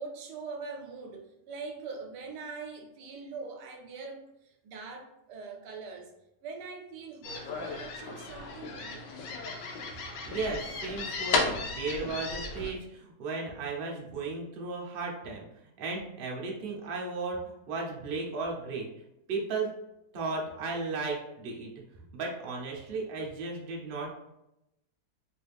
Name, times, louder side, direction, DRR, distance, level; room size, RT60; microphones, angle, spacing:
voice 1, 0.0-6.1 6.4-9.1, right 4 dB, 80° right, 2 dB, 1.2 m, -42 dB
sound 1, 7.2-12.7, left 3 dB, 80° left, 1.3 m, -34 dB
voice 2, 10.3-15.5 15.8-18.9 19.3-19.7 20.1-21.7 22.1-24.1, right 3 dB, 60° right, -2 dB, 0.6 m, -35 dB
3.2 x 2.4 x 3.3 m, 0.87 s
omnidirectional pair, 1.8 m